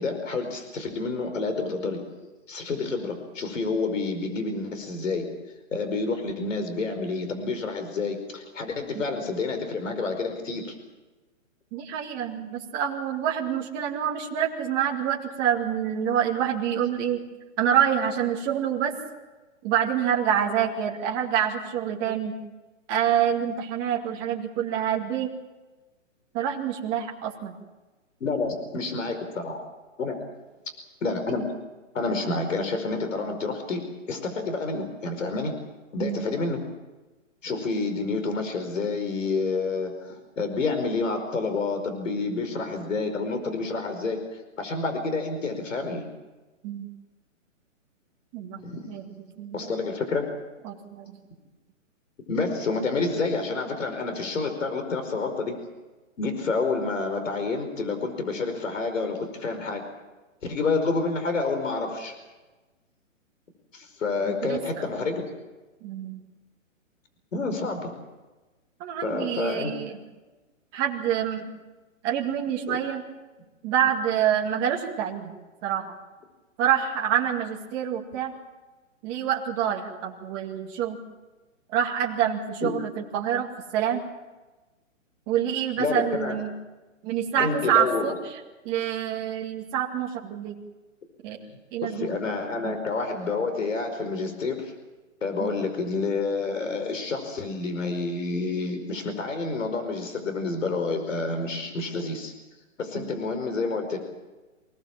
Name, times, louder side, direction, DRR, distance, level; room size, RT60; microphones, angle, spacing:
voice 1, 0.0-2.0 2.5-5.3 5.7-10.7 28.2-29.6 30.0-30.2 31.0-31.4 31.9-33.8 34.1-35.5 35.9-36.6 37.4-44.2 44.6-46.1 48.6-48.9 49.5-50.3 52.3-55.6 56.2-59.8 60.4-62.1 63.7-65.2 67.3-67.9 69.0-69.7 72.7-72.8 82.6-82.7 85.8-86.4 87.4-88.2 91.8-94.7 95.2-102.3 102.8-104.0, left 3 dB, 70° left, 7 dB, 5.1 m, -29 dB
voice 2, 11.7-17.2 17.6-18.9 19.6-22.3 22.9-25.3 26.3-27.6 36.0-36.3 46.6-46.9 48.3-48.6 48.9-49.1 49.4-49.7 50.6-51.2 64.2-64.8 65.8-66.2 68.8-70.0 70.7-71.5 72.0-73.0 73.6-75.3 75.6-75.9 76.6-78.3 79.0-81.0 81.7-84.0 85.3-86.5 87.0-88.1 88.6-90.5 91.2-91.4 91.7-92.1 92.6-92.8 95.4-95.5 102.9-103.1, right 9 dB, 15° right, -1 dB, 2.1 m, -27 dB
26.5 x 18.5 x 7.3 m, 1.2 s
hypercardioid pair, 170°, 39 cm